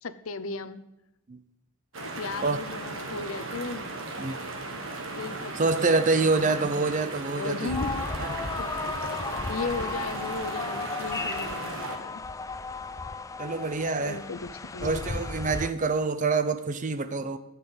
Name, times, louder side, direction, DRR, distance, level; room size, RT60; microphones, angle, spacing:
voice 1, 0.0-0.8 2.0-3.9 5.1-6.4 7.4-8.0 8.4-8.8 9.5-12.2 14.0-15.3, left 4 dB, 65° left, 0.7 m, -36 dB
sound 1, 1.9-12.0, right 2 dB, 60° right, 1.6 m, -36 dB
voice 2, 5.6-7.8 8.2-8.3 13.4-14.2 14.8-17.4, right 3 dB, 35° right, 0.6 m, -26 dB
sound 2, 7.7-15.7, left 3 dB, 15° left, 0.3 m, -34 dB
13.0 x 5.7 x 7.9 m
head